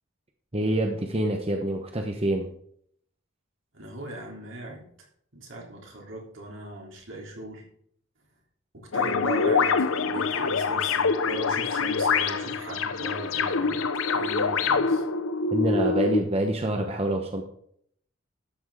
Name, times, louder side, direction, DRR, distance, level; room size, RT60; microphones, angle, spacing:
voice 1, 0.5-2.5 15.5-17.4, right 1 dB, 30° right, 3 dB, 1.0 m, -26 dB
voice 2, 3.7-4.9 5.3-7.6 8.7-15.0, right 2 dB, 65° right, -1 dB, 3.5 m, -38 dB
sound 1, 8.9-16.2, left 5 dB, 80° left, 0.8 m, -25 dB
12.5 x 6.3 x 4.8 m, 0.67 s
head